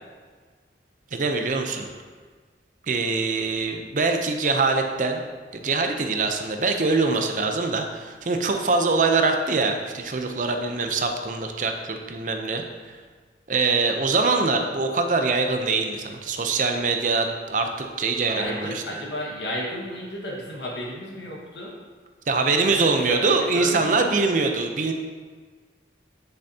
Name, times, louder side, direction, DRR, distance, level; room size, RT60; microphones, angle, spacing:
voice 1, 1.1-1.9 2.9-5.2 5.5-13.0 13.5-18.8 22.3-24.9, right 3 dB, 45° right, 5 dB, 0.6 m, -23 dB
voice 2, 18.2-21.8 22.4-24.0, left 1 dB, 75° left, -2 dB, 1.6 m, -33 dB
7.9 x 6.9 x 2.8 m, 1.5 s
head